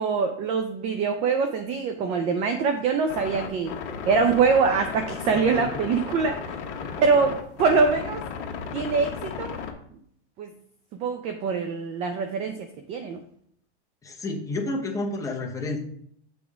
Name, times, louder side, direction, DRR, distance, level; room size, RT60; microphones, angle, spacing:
voice 1, 0.0-3.8 4.1-6.6 7.0-8.3 8.7-9.6 10.4-10.5 11.0-13.2, right 5 dB, 20° right, 6 dB, 0.3 m, -24 dB
sound 1, 3.1-9.7, left 6 dB, 50° left, 1.2 m, -35 dB
voice 2, 5.3-5.8 6.8-7.0 14.0-15.8, left 2 dB, 10° left, 1 dB, 0.9 m, -31 dB
7.1 x 3.4 x 4.8 m, 0.66 s
supercardioid pair, 140°, 34 cm